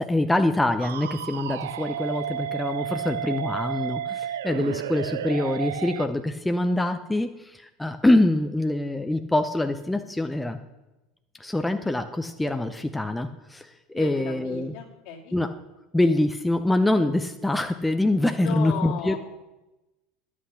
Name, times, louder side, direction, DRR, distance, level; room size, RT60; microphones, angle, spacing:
voice 1, 0.0-10.6 11.4-14.7 15.3-15.5 15.9-19.2, left 1 dB, 5° left, 6 dB, 0.7 m, -25 dB
sound 1, 0.8-6.1, right 10 dB, 70° right, 0.4 m, -32 dB
voice 2, 13.9-15.4 18.4-19.2, left 7 dB, 55° left, 0 dB, 2.4 m, -35 dB
11.0 x 8.7 x 5.8 m, 1.0 s
figure-of-eight pair, 75°, 0 cm